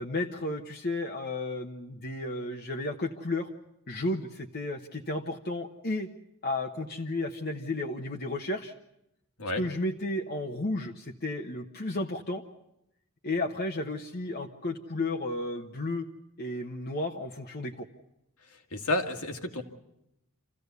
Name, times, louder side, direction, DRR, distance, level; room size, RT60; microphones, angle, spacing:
voice 1, 0.0-3.5 3.9-6.1 6.4-8.7 9.6-12.4 13.2-16.1 16.4-17.9, left 2 dB, 45° left, 2 dB, 1.1 m, -33 dB
voice 2, 18.5-19.6, left 2 dB, 75° left, 3 dB, 2.1 m, -31 dB
26.5 x 15.5 x 8.2 m, 0.84 s
head